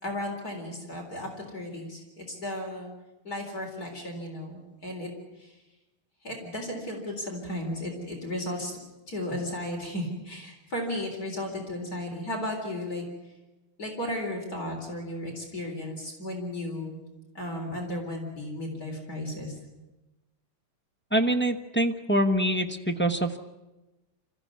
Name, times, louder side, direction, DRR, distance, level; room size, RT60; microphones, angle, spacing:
voice 1, 0.0-2.9 3.2-5.1 5.4-5.5 6.2-8.7 9.1-13.0 13.8-17.0 17.3-19.5, left 1 dB, 40° left, 0 dB, 4.4 m, -34 dB
voice 2, 21.1-23.4, right 1 dB, 10° left, 4 dB, 0.5 m, -25 dB
26.0 x 15.0 x 9.5 m, 1.0 s
omnidirectional pair, 2.4 m